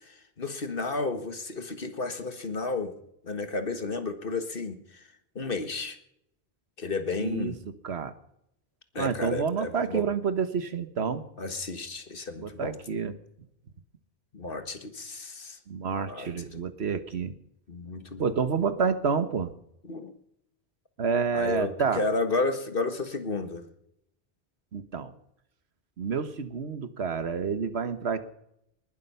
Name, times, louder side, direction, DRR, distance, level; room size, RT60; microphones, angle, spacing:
voice 1, 0.0-2.9 3.2-5.0 5.4-6.0 6.8-7.6 8.9-10.1 11.4-12.8 14.3-15.6 16.1-16.6 17.7-18.3 19.8-20.1 21.3-23.7, left 3 dB, 60° left, 9 dB, 1.8 m, -32 dB
voice 2, 7.2-7.5 7.8-8.1 9.0-11.2 12.4-13.1 15.7-17.3 18.2-19.5 21.0-22.0 24.7-25.1 26.0-28.2, right 6 dB, 85° right, 12 dB, 1.5 m, -29 dB
20.0 x 12.0 x 5.6 m, 0.77 s
omnidirectional pair, 1.1 m